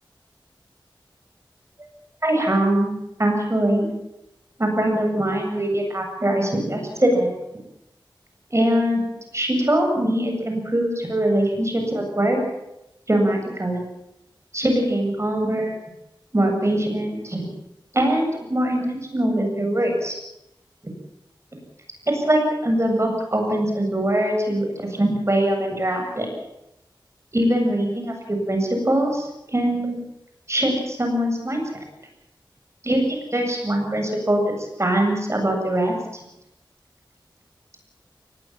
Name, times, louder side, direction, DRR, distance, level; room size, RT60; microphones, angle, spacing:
voice 1, 2.2-2.9 3.2-3.9 4.6-7.3 8.5-12.4 13.1-13.8 14.5-15.7 16.3-17.5 17.9-20.1 22.1-26.3 27.3-30.0 30.5-31.6 32.8-35.9, right 1 dB, 35° right, 3 dB, 7.8 m, -22 dB
23.0 x 19.5 x 7.4 m, 0.87 s
wide cardioid pair, 60°, 9 cm